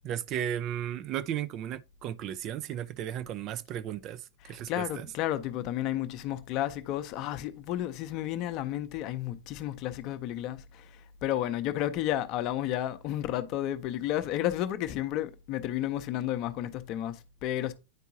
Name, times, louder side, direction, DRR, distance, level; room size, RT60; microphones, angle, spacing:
voice 1, 0.0-5.1, right 10 dB, 35° right, 0.4 m, -35 dB
voice 2, 4.5-17.7, left 12 dB, 40° left, 0.7 m, -32 dB
9.7 x 4.5 x 2.7 m
figure-of-eight pair, 90°, 0 cm